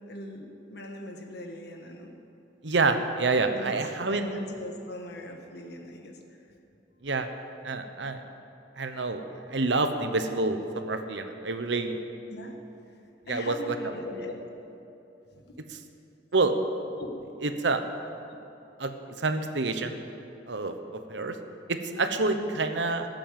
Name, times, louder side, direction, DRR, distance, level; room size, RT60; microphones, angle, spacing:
voice 1, 0.1-2.1 3.5-3.7 4.1-6.4 12.3-12.6 13.3-14.4 15.3-15.6 17.0-17.1 22.4-22.6, left 1 dB, 60° left, 2 dB, 1.5 m, -40 dB
voice 2, 2.6-4.2 7.0-7.3 7.6-8.2 8.8-9.2 9.5-12.0 13.3-13.8 16.3-16.5 17.4-17.8 18.8-20.0 20.5-21.4 21.7-23.1, right 3 dB, 70° right, 7 dB, 1.0 m, -27 dB
17.0 x 7.8 x 7.5 m, 2.9 s
head